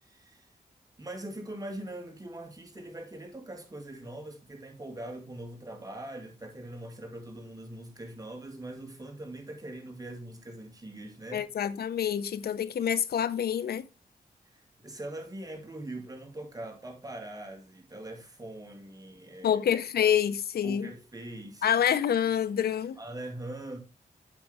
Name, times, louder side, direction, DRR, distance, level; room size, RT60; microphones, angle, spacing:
voice 1, 0.0-0.5 1.0-11.5 14.5-19.6 20.6-21.7 23.0-23.8, right 1 dB, 25° right, 2.1 m, -42 dB
voice 2, 11.3-13.9 19.4-20.9 21.6-23.0, left 9 dB, 80° left, 0.5 m, -27 dB
8.2 x 5.2 x 3.4 m
cardioid pair, 75°, 16 cm